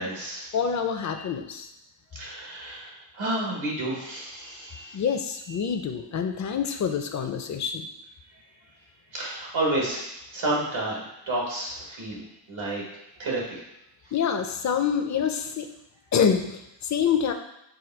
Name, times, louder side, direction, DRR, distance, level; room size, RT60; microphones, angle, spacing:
voice 1, 0.0-0.4 2.1-5.0 9.1-12.2 12.5-12.8 13.2-13.6, right 1 dB, 85° right, -4 dB, 1.5 m, -30 dB
voice 2, 0.5-1.7 4.9-7.9 14.1-15.7 16.1-17.3, left 7 dB, 40° left, 6 dB, 0.5 m, -26 dB
5.0 x 2.2 x 4.4 m, 0.85 s
wide cardioid pair, 90°, 46 cm